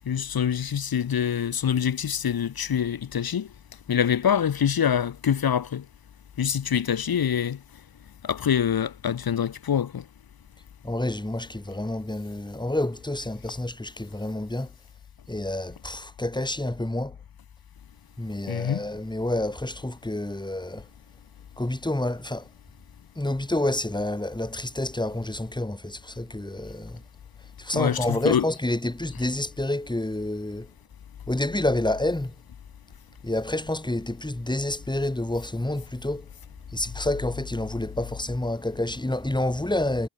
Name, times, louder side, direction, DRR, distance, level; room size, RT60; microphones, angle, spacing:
voice 1, 0.1-3.5 3.9-5.8 6.4-7.6 8.2-10.0 18.5-18.8 27.7-28.4, left 8 dB, 75° left, 1.7 m, -25 dB
voice 2, 10.8-14.7 15.3-17.2 18.2-20.9 21.6-22.5 23.1-27.0 27.6-30.7 31.3-32.3 33.2-36.3 36.7-40.1, left 1 dB, 10° left, 3.3 m, -28 dB
cardioid pair, 60°, 36 cm